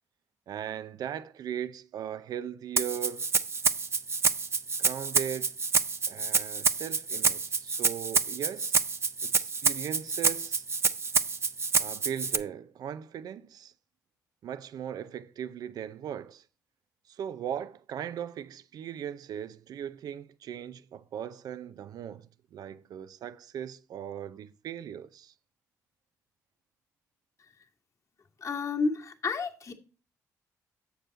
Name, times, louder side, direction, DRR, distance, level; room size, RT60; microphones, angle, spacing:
voice 1, 0.5-3.3 4.8-5.6 6.1-8.8 9.2-10.6 11.8-13.7 14.4-16.4 17.1-25.3, right 9 dB, 75° right, 0.6 m, -38 dB
Rattle (instrument), 2.8-12.4, right 5 dB, 40° right, 0.8 m, -27 dB
voice 2, 28.4-29.7, left 4 dB, 45° left, 1.7 m, -30 dB
7.6 x 7.0 x 4.0 m
supercardioid pair, 65°, 7 cm